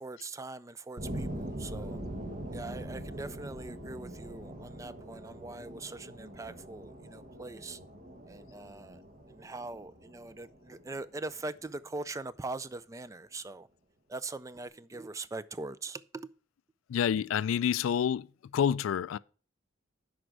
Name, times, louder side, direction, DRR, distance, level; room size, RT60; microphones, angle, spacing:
voice 1, 0.0-2.0 2.5-7.8 8.3-9.0 9.3-13.7 14.1-16.3, right 3 dB, 15° right, 0.3 m, -42 dB
sound 1, 1.0-11.7, right 1 dB, 40° right, 1.1 m, -43 dB
voice 2, 16.9-19.2, left 8 dB, 85° left, 0.3 m, -28 dB
7.9 x 5.1 x 6.3 m
head